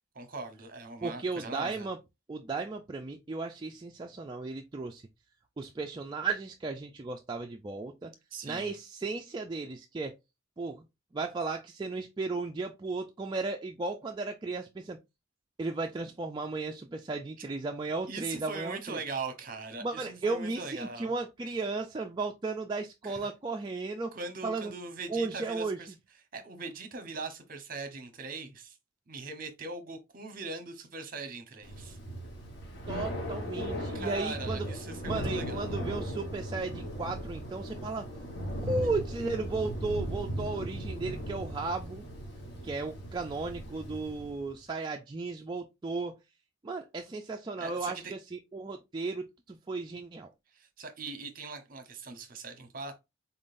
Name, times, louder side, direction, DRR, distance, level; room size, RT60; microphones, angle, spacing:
voice 1, 0.2-1.9 8.3-8.7 17.4-17.5 18.1-21.1 21.5-21.6 23.0-23.2 24.1-25.9 26.3-28.8 29.1-32.0 33.9-35.7 47.6-48.1 50.5-53.0, right 3 dB, 45° right, 0.9 m, -40 dB
voice 2, 1.0-2.0 2.3-5.0 5.6-8.1 8.4-10.2 10.6-10.8 11.1-15.0 15.6-19.0 19.8-24.1 24.4-24.7 25.1-25.8 32.9-34.7 35.0-38.1 38.6-42.0 42.6-46.2 46.6-50.3, right 3 dB, 20° right, 0.3 m, -35 dB
Thunder / Rain, 31.6-44.5, right 1 dB, 55° left, 1.1 m, -37 dB
4.1 x 3.7 x 2.5 m
head